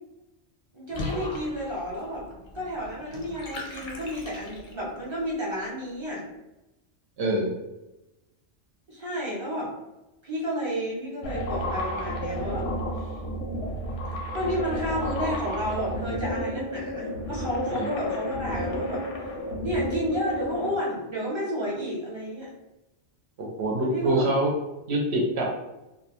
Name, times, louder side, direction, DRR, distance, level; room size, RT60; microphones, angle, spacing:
voice 1, 0.7-2.2 2.5-6.2 8.9-9.7 10.2-12.7 12.9-13.1 14.3-19.0 19.6-22.5 23.8-24.3, equal, 30° right, -6 dB, 0.6 m, -31 dB
Water / Bathtub (filling or washing), 0.9-5.0, left 2 dB, 50° left, 0.5 m, -39 dB
voice 2, 7.2-7.5 17.7-17.9 23.4-24.5 24.9-25.5, right 1 dB, 70° right, -2 dB, 0.8 m, -25 dB
sound 1, 11.2-20.7, equal, 85° left, 0.9 m, -31 dB
2.6 x 2.1 x 2.8 m, 0.98 s
omnidirectional pair, 1.2 m